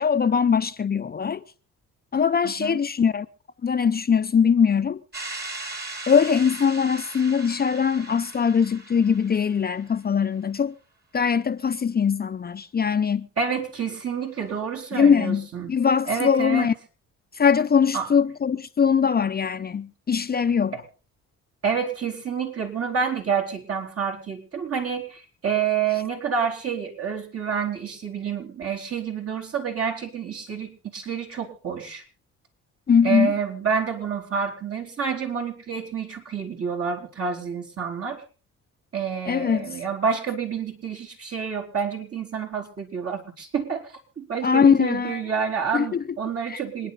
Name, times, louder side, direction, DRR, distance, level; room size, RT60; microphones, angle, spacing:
voice 1, 0.0-1.4 2.1-3.3 3.6-5.0 6.1-10.7 11.1-13.3 14.9-16.7 17.3-20.7 32.9-33.3 39.3-39.8 44.4-45.2 45.7-46.0 46.5-46.6, left 6 dB, 30° left, 0.7 m, -21 dB
voice 2, 2.4-2.8 13.4-15.7 16.1-16.7 17.9-18.1 20.7-20.8 21.6-32.0 33.0-38.2 38.9-46.9, right 6 dB, 50° right, 4.6 m, -28 dB
sound 1, 5.1-9.9, right 2 dB, 35° right, 3.7 m, -38 dB
27.0 x 10.0 x 4.1 m
cardioid pair, 90°, 30 cm